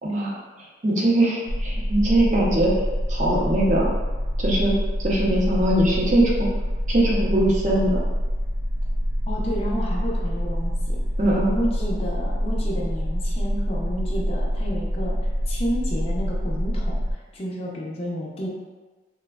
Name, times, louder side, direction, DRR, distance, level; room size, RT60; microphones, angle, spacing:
voice 1, 0.0-0.4 0.8-2.7 3.1-3.9 4.4-4.8 5.0-6.5 6.9-8.0 11.2-11.5, right 1 dB, 45° right, -4 dB, 0.6 m, -21 dB
sound 1, 1.5-17.1, equal, 90° left, 0.5 m, -26 dB
voice 2, 9.3-11.0 11.5-15.1 15.5-17.0 17.3-18.5, equal, 35° left, -3 dB, 0.5 m, -30 dB
3.3 x 2.0 x 2.3 m, 1.2 s
head